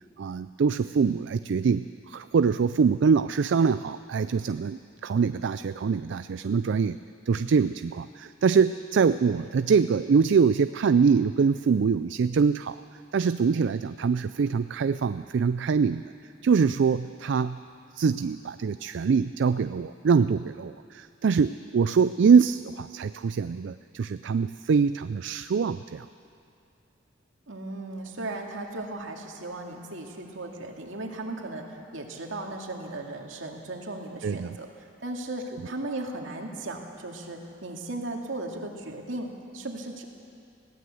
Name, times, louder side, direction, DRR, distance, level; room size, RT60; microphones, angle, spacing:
voice 1, 0.2-7.0 7.3-12.8 13.1-16.0 16.4-17.6 18.0-26.1 34.2-34.6, right 5 dB, 65° right, 13 dB, 0.4 m, -24 dB
voice 2, 27.5-40.0, right 2 dB, 85° right, 1 dB, 2.3 m, -36 dB
20.5 x 16.0 x 7.8 m, 2.5 s
head